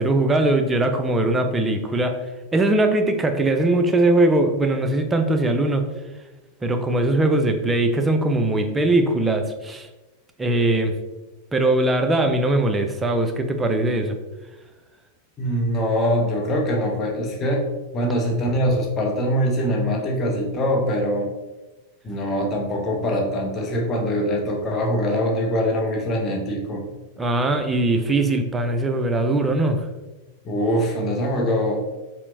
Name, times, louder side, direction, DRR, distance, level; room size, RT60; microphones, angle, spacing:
voice 1, 0.0-2.1 2.5-5.8 6.6-9.9 10.4-10.9 11.5-14.2 27.2-29.8, right 2 dB, 15° right, 6 dB, 0.4 m, -20 dB
voice 2, 15.4-17.6 17.9-21.3 22.0-26.8 30.4-31.8, equal, 25° left, 0 dB, 0.7 m, -23 dB
4.3 x 2.0 x 2.5 m, 1.1 s
figure-of-eight pair, 90°, 0 cm